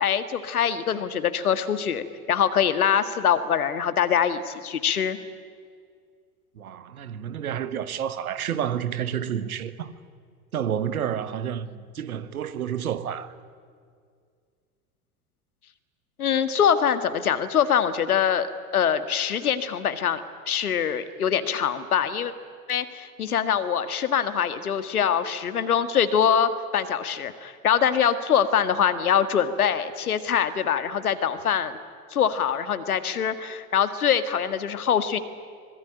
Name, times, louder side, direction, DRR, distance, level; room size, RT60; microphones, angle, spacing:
voice 1, 0.0-5.2 16.2-18.5 18.7-20.2 20.5-22.3 22.7-31.8 32.1-35.2, left 8 dB, 75° left, 1.8 m, -24 dB
voice 2, 6.6-9.9 10.5-13.3, right 9 dB, 70° right, 1.4 m, -30 dB
25.0 x 20.0 x 10.0 m
figure-of-eight pair, 80°, 44 cm